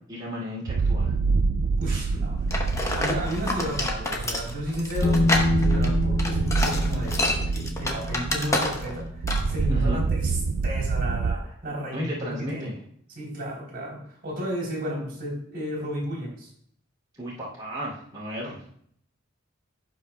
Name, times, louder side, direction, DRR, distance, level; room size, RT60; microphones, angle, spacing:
voice 1, 0.1-1.1 1.8-2.2 3.7-3.8 9.7-10.0 11.9-12.8 17.2-18.6, equal, 20° right, -7 dB, 2.6 m, -34 dB
sound 1, 0.7-11.4, right 4 dB, 65° right, 0.4 m, -27 dB
voice 2, 1.8-12.7 13.1-16.5, equal, 50° right, -3 dB, 3.3 m, -33 dB
sound 2, 2.5-9.0 9.3-9.5, left 2 dB, 15° left, 1.0 m, -28 dB
Bass guitar, 5.0-11.3, left 2 dB, 45° left, 0.6 m, -30 dB
16.0 x 5.4 x 2.3 m, 0.65 s
head